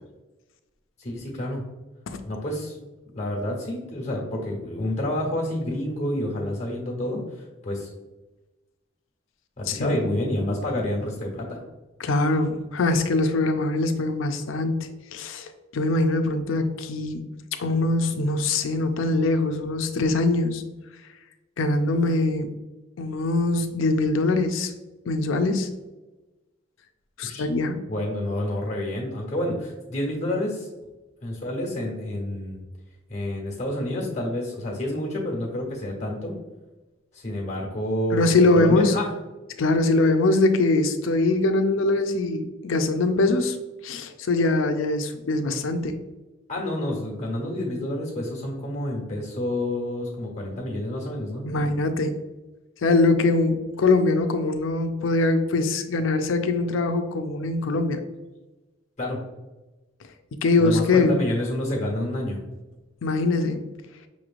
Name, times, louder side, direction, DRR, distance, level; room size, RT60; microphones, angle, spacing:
voice 1, 1.0-1.6 2.2-2.8 3.1-7.9 9.6-11.6 27.2-27.5 27.9-30.7 31.2-32.6 33.1-36.3 37.1-39.1 46.5-51.5 59.0-59.2 60.6-62.4, left 1 dB, 35° left, -1 dB, 1.2 m, -29 dB
voice 2, 9.7-10.0 12.0-17.2 17.6-20.6 21.6-22.5 23.0-24.7 25.1-25.7 27.2-27.8 38.1-38.9 39.6-43.6 43.8-45.9 51.4-52.1 52.8-58.0 60.4-61.2 63.0-63.6, left 2 dB, 85° left, 8 dB, 0.5 m, -22 dB
5.7 x 3.1 x 2.5 m, 1.1 s
head